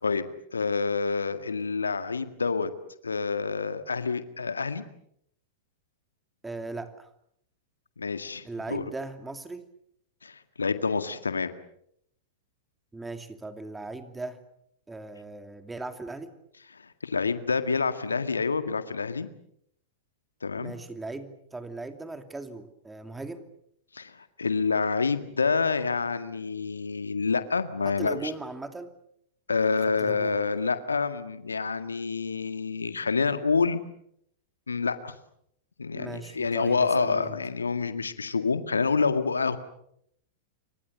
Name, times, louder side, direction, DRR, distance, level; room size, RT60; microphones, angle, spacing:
voice 1, 0.0-2.7 3.0-4.8 8.0-8.8 10.2-11.5 16.7-19.3 20.4-20.7 23.9-28.3 29.5-33.8 34.7-35.1 35.8-39.6, left 4 dB, 80° left, 10 dB, 1.8 m, -27 dB
voice 2, 6.4-7.1 8.4-9.7 12.9-14.4 14.9-16.3 20.6-23.5 27.8-28.9 29.6-30.4 35.9-37.4, right 3 dB, 10° right, 8 dB, 2.8 m, -38 dB
29.5 x 25.0 x 6.9 m, 0.73 s
figure-of-eight pair, 95°, 0 cm